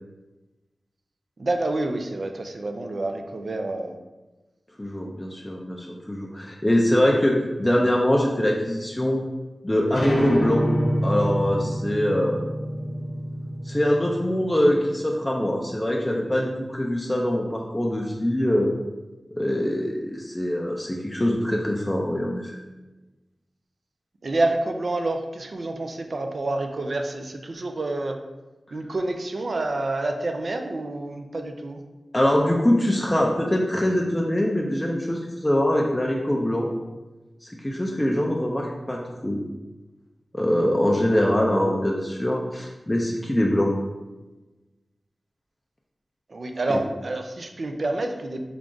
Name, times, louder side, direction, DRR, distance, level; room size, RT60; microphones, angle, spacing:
voice 1, 1.4-4.0 24.2-28.2 28.7-31.8 46.3-48.4, right 2 dB, 55° right, 5 dB, 0.4 m, -28 dB
voice 2, 4.8-9.2 9.6-10.7 11.0-12.4 13.6-18.7 19.4-22.6 32.1-36.7 37.4-39.4 40.3-43.7 46.7-46.8, left 1 dB, 15° left, -1 dB, 0.4 m, -23 dB
sound 1, 9.9-15.2, equal, 65° left, 0.8 m, -27 dB
3.7 x 2.3 x 3.7 m, 1.1 s
wide cardioid pair, 95°, 0 cm